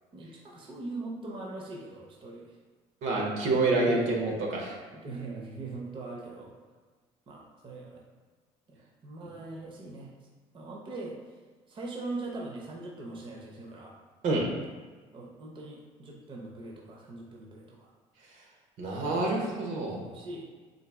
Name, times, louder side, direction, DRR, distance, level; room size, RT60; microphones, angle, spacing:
voice 1, 0.1-2.5 3.9-4.1 4.9-6.6 7.3-8.0 8.7-10.1 10.5-11.1 11.7-14.0 15.1-17.9 19.0-19.3 19.6-19.7 20.0-20.5, right 2 dB, 40° right, -1 dB, 0.7 m, -41 dB
voice 2, 3.0-4.7 14.2-14.5 18.8-20.0, right 2 dB, 70° right, 0 dB, 0.9 m, -27 dB
3.9 x 2.6 x 3.5 m, 1.4 s
supercardioid pair, 85°, 14 cm